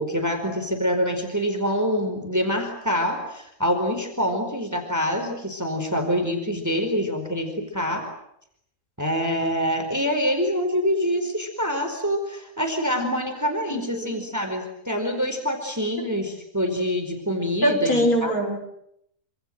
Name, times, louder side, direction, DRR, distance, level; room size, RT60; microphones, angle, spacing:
voice 1, 0.0-8.1 9.0-18.3, equal, 10° right, 5 dB, 4.6 m, -25 dB
voice 2, 13.7-14.1 17.6-18.6, equal, 75° left, 5 dB, 6.4 m, -22 dB
27.5 x 26.5 x 7.8 m, 0.74 s
omnidirectional pair, 1.6 m